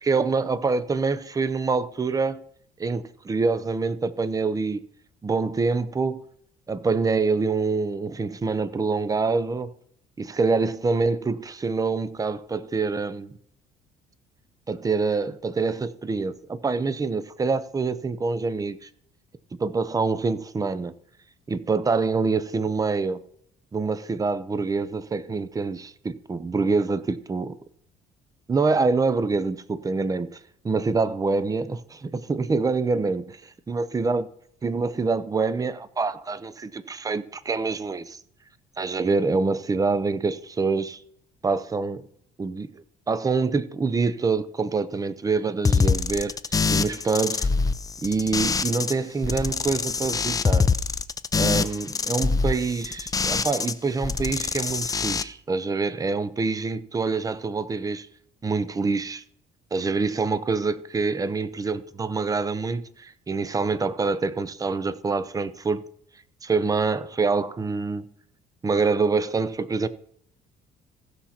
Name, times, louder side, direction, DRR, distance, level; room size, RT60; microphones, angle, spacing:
voice 1, 0.0-2.4 2.8-4.8 5.2-6.2 6.7-9.7 10.2-13.4 14.7-18.9 19.6-20.9 21.5-23.2 23.7-27.6 28.5-30.4 30.6-33.4 33.7-34.3 34.6-38.2 38.8-41.0 41.4-42.1 42.4-47.5 48.0-50.7 51.4-58.1 58.4-59.2 59.7-65.8 66.4-68.0 68.6-69.9, right 4 dB, 20° right, 0.7 m, -26 dB
sound 1, 45.6-48.9 49.2-53.7 54.0-55.2, left 5 dB, 20° left, 0.5 m, -24 dB
15.5 x 5.8 x 4.3 m
cardioid pair, 110°, 17 cm